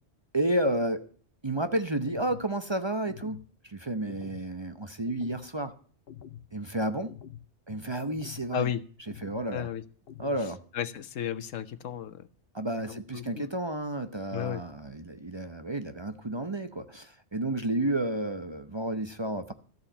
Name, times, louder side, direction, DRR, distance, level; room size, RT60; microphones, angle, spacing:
voice 1, 0.3-1.0 1.4-5.7 6.5-7.1 7.7-8.7 9.2-9.7 10.2-10.6 12.5-19.5, right 1 dB, 25° right, 9 dB, 0.8 m, -31 dB
sound 1, 2.1-2.5 3.1-3.5 4.1-4.5 5.1-5.5 6.1-6.5 7.1-7.5 8.1-8.5 9.1-9.5 10.1-10.5, left 10 dB, 55° left, 1.0 m, -46 dB
voice 2, 8.5-8.8 9.5-9.8 10.4-12.3 12.9-13.5 14.3-14.6, left 9 dB, 85° left, 14 dB, 1.2 m, -34 dB
13.5 x 7.2 x 8.9 m, 0.44 s
omnidirectional pair, 1.3 m